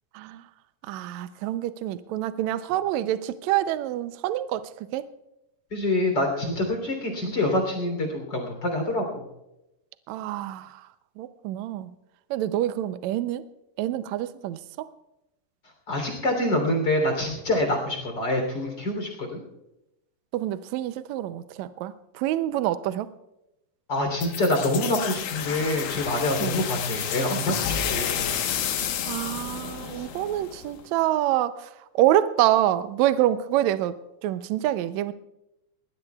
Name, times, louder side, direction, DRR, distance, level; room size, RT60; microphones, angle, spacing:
voice 1, 0.9-5.1 10.1-10.8 11.2-11.9 12.3-13.5 13.8-14.9 20.3-23.1 26.4-26.6 29.0-35.1, right 13 dB, 85° right, 12 dB, 1.6 m, -26 dB
voice 2, 5.7-9.3 15.9-19.4 23.9-28.2, left 1 dB, 30° left, 2 dB, 3.7 m, -26 dB
sound 1, 24.2-30.8, left 8 dB, 85° left, 2.9 m, -30 dB
22.0 x 19.0 x 2.4 m, 0.90 s
omnidirectional pair, 4.0 m